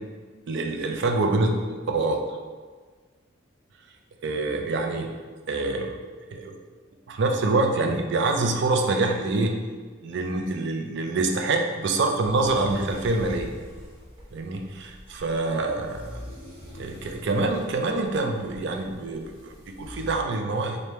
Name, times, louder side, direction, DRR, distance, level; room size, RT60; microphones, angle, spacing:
voice 1, 0.5-1.5 1.9-2.2 4.2-5.1 5.5-6.0 6.3-6.5 7.1-9.5 10.0-13.5 14.3-16.2 16.7-20.8, right 2 dB, 60° right, 3 dB, 0.4 m, -26 dB
sound 1, 12.2-20.1, equal, 30° right, 0.9 m, -43 dB
3.3 x 2.6 x 4.2 m, 1.5 s
head